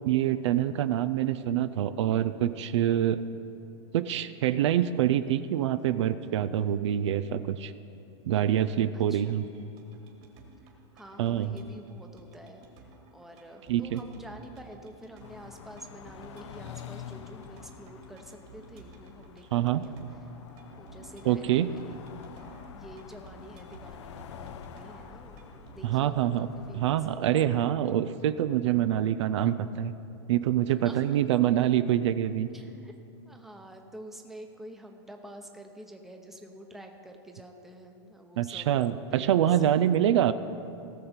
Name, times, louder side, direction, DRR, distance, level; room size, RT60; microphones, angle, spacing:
voice 1, 0.1-3.2 3.9-7.7 8.3-9.4 11.2-11.5 13.7-14.0 19.5-19.8 21.3-21.7 25.8-26.5 26.8-29.9 30.3-32.5 38.4-40.3, right 11 dB, 75° right, 12 dB, 0.5 m, -25 dB
voice 2, 8.9-9.4 10.9-12.6 13.1-20.0 20.8-22.0 22.3-22.4 22.7-27.2 30.7-31.2 32.5-32.9 33.3-38.8 39.1-40.0, equal, ahead, 3 dB, 0.8 m, -48 dB
sound 1, 9.3-25.8, right 3 dB, 40° right, 2.0 m, -55 dB
sound 2, 15.2-27.2, left 7 dB, 75° left, 0.7 m, -47 dB
18.0 x 6.7 x 4.4 m, 2.8 s
supercardioid pair, 145°, 15 cm